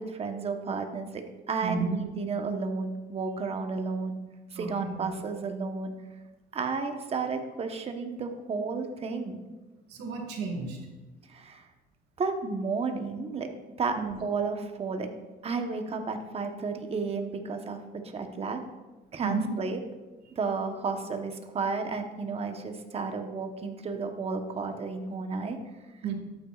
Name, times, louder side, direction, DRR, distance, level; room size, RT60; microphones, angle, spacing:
voice 1, 0.0-4.2 4.5-5.9 6.5-9.4 11.3-11.6 12.2-13.5 13.8-15.1 15.4-17.8 18.0-18.6 19.1-19.8 20.4-25.6, right 4 dB, 35° right, 5 dB, 1.1 m, -32 dB
voice 2, 1.6-2.0 4.5-5.1 9.2-9.3 9.9-10.8 14.0-14.2 19.2-19.5 26.0-26.1, right 5 dB, 75° right, 2 dB, 1.9 m, -32 dB
12.5 x 8.8 x 2.4 m, 1.2 s
cardioid pair, 110°, 17 cm